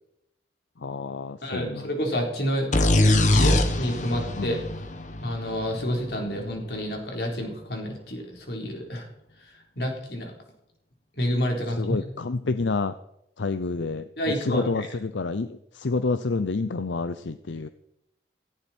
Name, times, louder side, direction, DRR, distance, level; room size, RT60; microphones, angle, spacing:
voice 1, 0.8-1.9 4.4-4.6 11.8-13.0 13.4-17.7, left 3 dB, 85° left, 12 dB, 0.6 m, -28 dB
voice 2, 1.4-2.7 3.3-4.6 5.2-9.1 9.4-10.3 11.1-12.0 14.2-14.9, equal, 60° left, 1 dB, 4.0 m, -29 dB
sound 1, 2.7-6.4, left 1 dB, 40° left, 1.3 m, -23 dB
17.5 x 15.0 x 4.4 m, 0.81 s
head